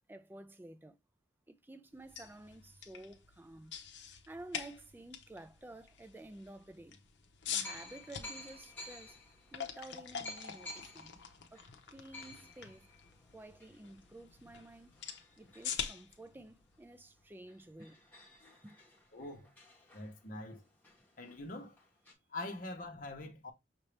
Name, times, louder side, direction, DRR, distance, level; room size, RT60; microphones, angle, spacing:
voice 1, 0.1-1.0 1.5-7.0 7.5-9.2 9.5-11.2 11.5-12.9 13.3-15.0 15.4-18.0 18.6-18.8, right 1 dB, 10° right, 0.4 m, -52 dB
sound 1, 1.9-17.9, left 7 dB, 70° left, 0.8 m, -46 dB
sound 2, 5.9-6.0 6.9-7.0 7.6-16.8 17.2-17.3 17.5-22.1, left 2 dB, 10° left, 1.4 m, -54 dB
voice 2, 19.1-19.5 19.9-20.6 21.2-21.7 22.3-23.5, left 2 dB, 45° left, 1.1 m, -44 dB
5.9 x 2.8 x 3.2 m
head